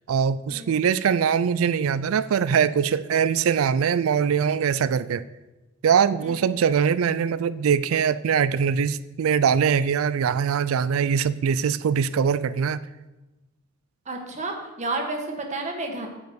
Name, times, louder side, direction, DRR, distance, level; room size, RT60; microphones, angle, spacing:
voice 1, 0.1-5.2 5.8-12.8, right 7 dB, 80° right, 0.4 m, -22 dB
voice 2, 14.1-16.1, right 2 dB, 35° right, 1.5 m, -31 dB
8.9 x 5.3 x 7.9 m
head